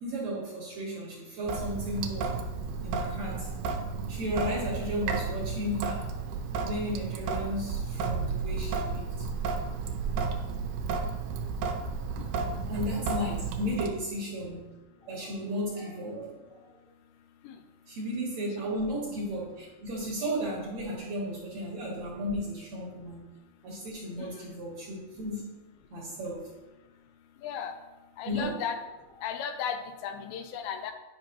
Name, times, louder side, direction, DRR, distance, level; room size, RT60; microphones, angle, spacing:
voice 1, 0.0-2.4 2.8-3.5 4.1-6.1 6.7-9.1 12.7-14.7 15.0-16.7 17.9-23.3 23.6-25.4 25.9-26.5 28.3-28.6, equal, 60° right, -3 dB, 1.9 m, -34 dB
Sink (filling or washing) / Drip, 1.5-13.9, right 4 dB, 80° right, 2.4 m, -32 dB
voice 2, 27.4-27.7 28.2-28.8 29.2-30.9, left 7 dB, 80° left, 7 dB, 2.3 m, -35 dB
10.0 x 5.5 x 2.9 m, 1.1 s
omnidirectional pair, 4.4 m